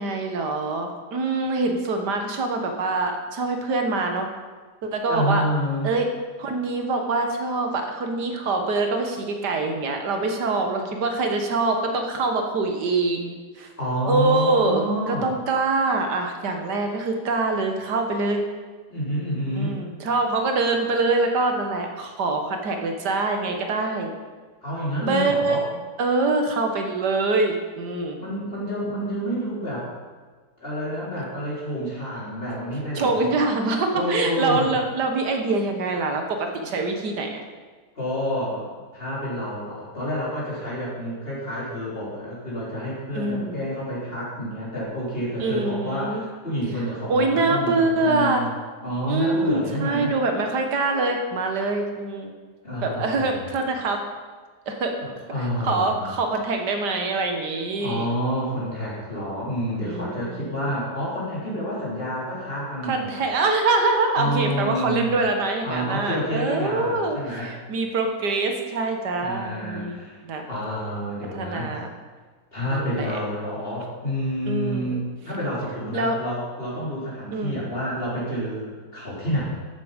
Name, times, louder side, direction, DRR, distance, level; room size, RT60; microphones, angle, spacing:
voice 1, 0.0-4.3 4.8-5.4 5.8-6.1 6.4-13.7 14.0-18.4 19.6-24.1 25.0-25.6 26.0-28.2 32.9-37.4 43.1-43.6 45.4-46.2 47.1-48.5 49.1-52.3 52.8-54.1 54.7-55.0 55.4-58.1 59.8-60.6 62.8-70.4 71.3-71.9 72.7-73.2 74.5-75.0 75.9-76.2 77.3-77.6, right 3 dB, 85° right, 4 dB, 1.9 m, -24 dB
voice 2, 5.1-5.9 13.8-15.3 18.9-19.8 24.6-25.6 28.2-29.9 30.6-33.3 33.9-34.7 38.0-48.5 48.8-50.1 52.6-53.4 55.0-56.1 57.8-63.2 64.1-65.2 65.6-67.5 69.2-70.2 70.5-71.7 72.5-79.5, equal, 35° left, -7 dB, 4.2 m, -29 dB
13.0 x 8.2 x 5.2 m, 1.4 s
omnidirectional pair, 1.7 m